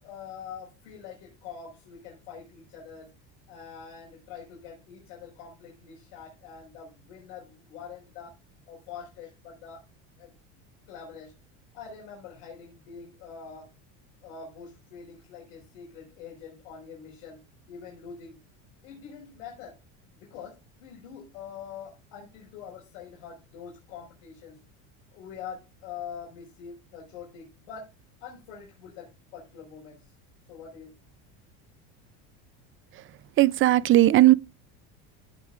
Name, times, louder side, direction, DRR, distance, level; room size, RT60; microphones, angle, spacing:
voice 1, 0.0-3.1 3.5-8.4 8.7-9.8 10.2-10.3 10.9-11.3 11.7-13.7 14.2-17.4 17.7-18.4 18.8-19.8 20.2-24.6 25.1-27.9 28.2-30.1 30.5-31.0, left 7 dB, 85° left, 5.0 m, -44 dB
voice 2, 33.4-34.3, right 15 dB, 35° right, 0.5 m, -17 dB
16.0 x 6.8 x 2.5 m
cardioid pair, 135°, 36 cm